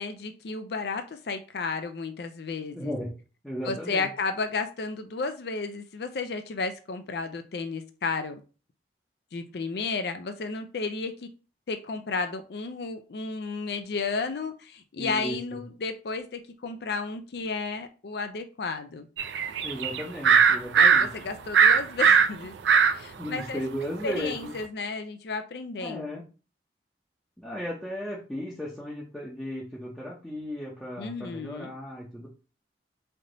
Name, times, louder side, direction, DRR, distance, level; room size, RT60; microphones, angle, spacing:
voice 1, 0.0-2.9 3.7-8.4 9.3-11.3 11.7-19.1 20.8-22.6 22.9-23.6 24.0-26.2 31.0-31.7, left 4 dB, 65° left, 8 dB, 0.4 m, -33 dB
voice 2, 2.7-3.1 3.4-4.1 15.0-15.6 19.6-21.1 23.2-24.5 25.8-26.3 27.4-32.3, equal, 5° left, -6 dB, 0.7 m, -35 dB
sound 1, 19.2-21.1 21.5-22.9 23.4-23.5, right 6 dB, 90° right, 0.4 m, -19 dB
3.3 x 2.7 x 3.9 m, 0.34 s
head